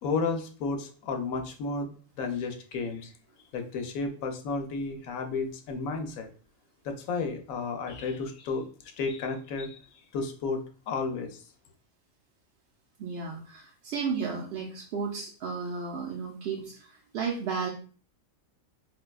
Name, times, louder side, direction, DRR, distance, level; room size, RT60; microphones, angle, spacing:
voice 1, 0.0-1.9 2.2-3.1 3.5-6.3 6.8-8.7 9.0-9.8 10.1-11.4, left 4 dB, 85° left, 5 dB, 1.0 m, -32 dB
voice 2, 13.0-17.7, right 5 dB, 60° right, -2 dB, 0.7 m, -33 dB
4.3 x 2.2 x 2.3 m, 0.40 s
omnidirectional pair, 1.4 m